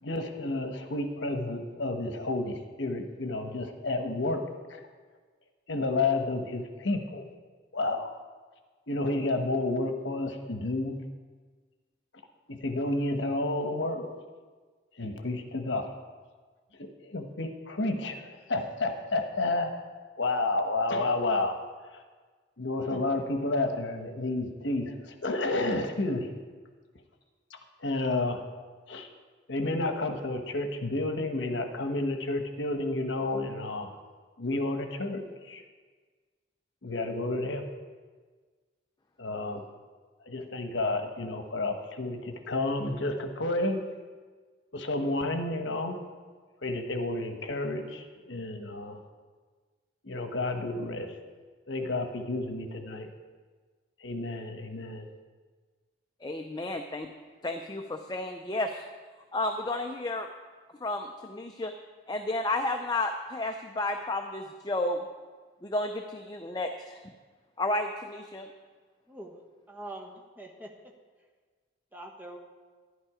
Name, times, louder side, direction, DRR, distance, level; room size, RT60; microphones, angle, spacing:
voice 1, 0.0-4.4 4.7-4.8 5.7-7.3 7.7-8.1 8.9-11.0 12.5-14.1 15.0-15.9 16.8-19.7 20.2-21.6 21.9-22.0 22.6-26.3 27.5-28.4 28.9-29.1 29.5-33.9 34.4-35.6 36.8-37.7 39.2-39.6 40.3-43.8 44.7-46.0 46.6-49.0 50.0-51.1 51.7-53.1 54.0-55.1, left 2 dB, 70° left, 6 dB, 1.1 m, -31 dB
voice 2, 56.2-57.1 57.4-58.8 59.3-60.3 60.7-61.7 62.1-65.0 65.6-67.0 67.6-68.5, left 2 dB, 20° left, 5 dB, 0.5 m, -32 dB
voice 3, 69.1-69.4 69.7-70.7 71.9-72.4, right 1 dB, 10° right, 0 dB, 1.3 m, -43 dB
12.0 x 11.0 x 4.9 m, 1.5 s
head